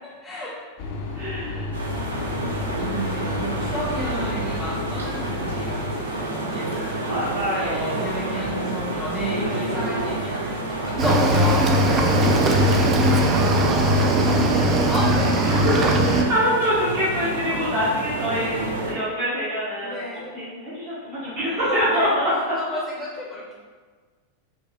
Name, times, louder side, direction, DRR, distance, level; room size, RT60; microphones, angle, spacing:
voice 1, 0.0-0.6 2.8-7.0 7.5-12.3 14.9-15.6 15.8-16.2 17.2-17.9 18.4-18.6 19.8-20.2 21.3-22.1 22.5-23.5, equal, 5° left, -5 dB, 0.7 m, -32 dB
sound 1, 0.8-6.0, left 3 dB, 50° left, 0.4 m, -32 dB
voice 2, 1.2-3.1 7.1-8.1 9.4-10.0 12.3-13.2 13.6-14.9 15.4-22.6, equal, 45° right, -9 dB, 0.9 m, -27 dB
sound 2, 1.7-18.9, right 2 dB, 75° right, 0.6 m, -29 dB
Cricket / Waves surf, 11.0-16.2, right 1 dB, 30° right, 0.4 m, -19 dB
5.5 x 2.0 x 2.2 m, 1.5 s
figure-of-eight pair, 90°, 0 cm